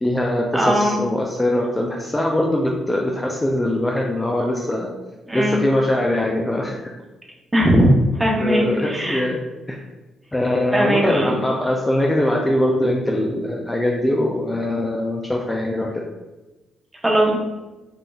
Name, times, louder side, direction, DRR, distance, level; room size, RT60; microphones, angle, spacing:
voice 1, 0.0-4.9 5.3-6.8 8.4-9.4 9.7-9.8 10.3-16.0, left 1 dB, 15° left, -1 dB, 0.4 m, -22 dB
voice 2, 0.5-1.0 5.3-5.6 7.5-7.9 8.2-9.2 10.7-11.3 17.0-17.4, equal, 15° right, -1 dB, 0.9 m, -19 dB
5.3 x 2.8 x 2.4 m, 1.1 s
cardioid pair, 90°, 0 cm